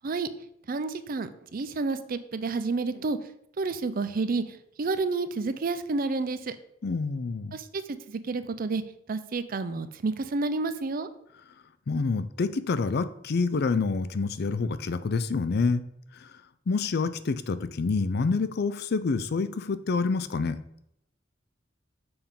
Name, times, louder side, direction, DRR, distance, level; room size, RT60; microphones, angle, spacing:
voice 1, 0.7-3.2 3.6-4.4 4.8-6.5 7.5-7.8 8.1-8.8 9.1-11.1, right 3 dB, 50° right, 12 dB, 0.5 m, -30 dB
voice 2, 6.8-7.6 11.9-15.8 16.1-16.3 16.7-20.6, left 4 dB, 55° left, 13 dB, 0.5 m, -27 dB
6.9 x 3.6 x 5.5 m, 0.76 s
head